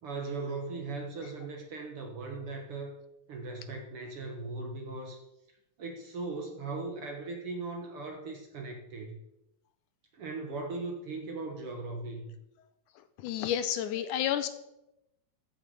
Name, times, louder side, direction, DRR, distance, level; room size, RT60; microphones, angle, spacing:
voice 1, 0.0-2.9 3.3-5.2 5.8-9.2 10.1-12.4, right 3 dB, 55° right, 2 dB, 1.8 m, -38 dB
voice 2, 13.2-14.5, left 10 dB, 75° left, 11 dB, 2.1 m, -30 dB
14.5 x 7.3 x 5.3 m, 0.89 s
omnidirectional pair, 3.8 m